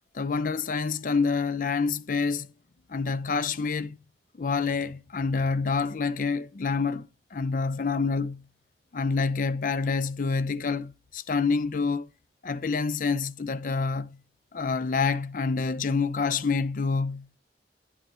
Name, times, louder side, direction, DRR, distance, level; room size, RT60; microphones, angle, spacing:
voice 1, 0.1-2.5 2.9-4.0 4.4-8.4 8.9-12.1 12.4-14.2 14.5-17.4, left 4 dB, 50° left, 0.5 m, -27 dB
10.5 x 6.7 x 4.2 m
head